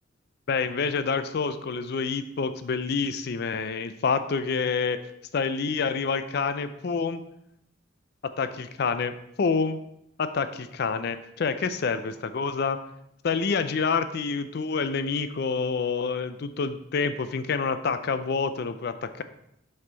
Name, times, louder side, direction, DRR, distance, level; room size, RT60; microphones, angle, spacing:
voice 1, 0.5-5.0 5.3-7.2 8.4-9.8 10.2-12.8 13.2-19.2, left 5 dB, 55° left, 11 dB, 0.4 m, -27 dB
5.6 x 5.6 x 3.9 m, 0.78 s
head